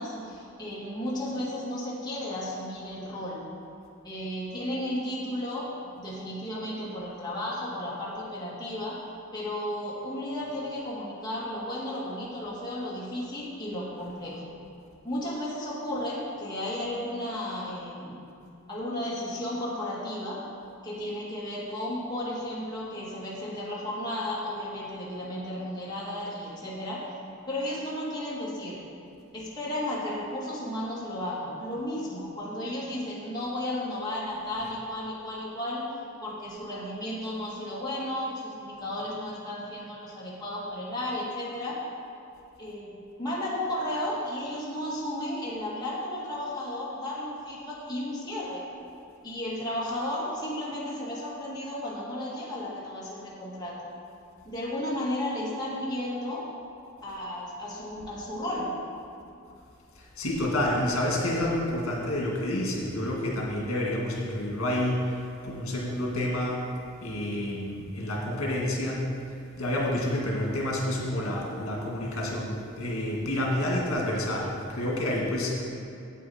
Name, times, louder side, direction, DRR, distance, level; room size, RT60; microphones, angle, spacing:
voice 1, 0.0-3.4 4.0-9.0 9.3-14.4 15.0-18.2 18.7-20.4 20.8-27.0 27.5-28.8 29.3-35.9 36.2-41.8 42.6-48.6 49.2-53.9 54.4-56.5 57.0-58.7, left 1 dB, 20° left, -8 dB, 2.1 m, -34 dB
voice 2, 60.0-65.0 65.4-66.6 67.0-69.1 69.6-75.6, left 1 dB, 80° left, -3 dB, 1.9 m, -29 dB
9.2 x 8.2 x 4.3 m, 2.6 s
head